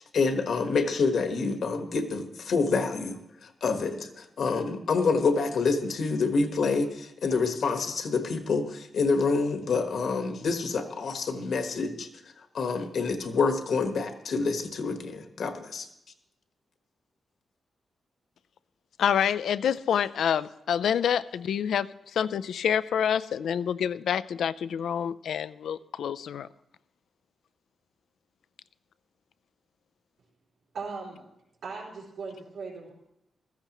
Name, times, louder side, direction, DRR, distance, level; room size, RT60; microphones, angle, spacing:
voice 1, 0.0-12.1 12.5-15.9, left 4 dB, 65° left, 6 dB, 1.2 m, -27 dB
voice 2, 19.0-26.5, left 8 dB, 90° left, 16 dB, 0.4 m, -27 dB
voice 3, 30.7-31.2 31.6-32.9, right 4 dB, 75° right, -3 dB, 4.1 m, -38 dB
15.5 x 14.0 x 3.0 m, 0.83 s
wide cardioid pair, 160°, 0 cm